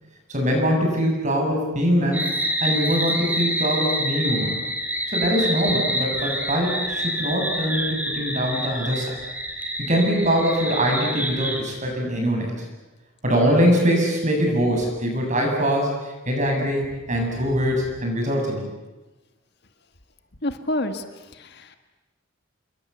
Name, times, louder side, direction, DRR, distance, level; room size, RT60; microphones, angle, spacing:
voice 1, 0.3-2.3 2.6-4.6 5.1-9.2 9.8-12.6 13.2-18.7, equal, 35° right, 1 dB, 7.6 m, -23 dB
sound 1, 2.1-11.6, equal, 10° right, 2.7 m, -27 dB
voice 2, 20.4-21.0 21.3-21.8, left 1 dB, 55° left, 8 dB, 1.7 m, -28 dB
28.5 x 22.0 x 8.2 m, 1.1 s
head